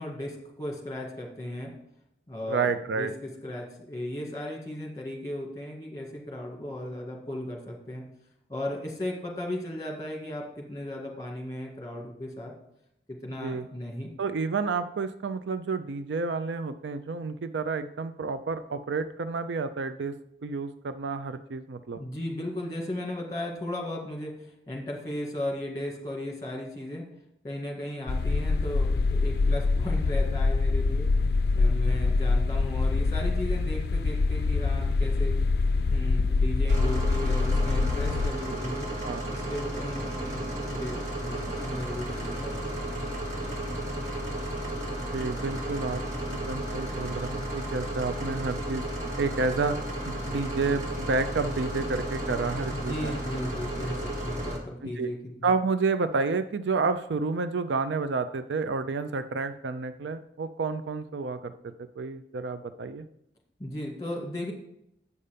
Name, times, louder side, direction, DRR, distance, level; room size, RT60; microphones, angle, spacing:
voice 1, 0.0-1.7 2.3-8.0 8.5-12.5 13.1-14.1 22.0-27.0 27.4-35.3 35.9-38.9 39.4-42.6 52.7-55.2 63.6-64.5, left 1 dB, 20° left, 0 dB, 1.8 m, -36 dB
voice 2, 2.5-3.1 13.4-13.7 14.2-20.1 20.4-22.0 38.5-38.6 39.0-39.3 45.1-46.0 46.3-48.8 49.2-49.8 50.1-53.2 54.8-55.1 55.4-63.1, right 4 dB, 90° right, 10 dB, 0.5 m, -30 dB
sound 1, 28.1-38.3, left 3 dB, 65° left, 0.4 m, -25 dB
sound 2, 36.7-54.6, right 1 dB, 40° right, 1.9 m, -33 dB
8.4 x 5.5 x 5.1 m, 0.79 s
head